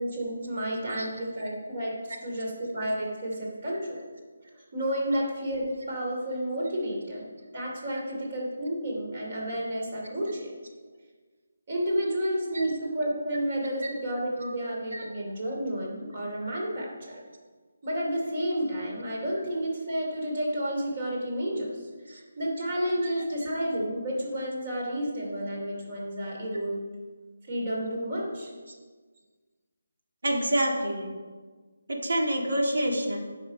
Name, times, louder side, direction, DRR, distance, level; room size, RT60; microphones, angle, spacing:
voice 1, 0.0-4.0 4.5-10.5 11.7-17.2 17.8-26.8 27.5-28.5, equal, 40° right, -2 dB, 3.0 m, -31 dB
voice 2, 30.2-31.1 31.9-33.2, right 1 dB, 70° right, 1 dB, 2.1 m, -27 dB
9.4 x 6.0 x 5.2 m, 1.4 s
figure-of-eight pair, 165°, 0 cm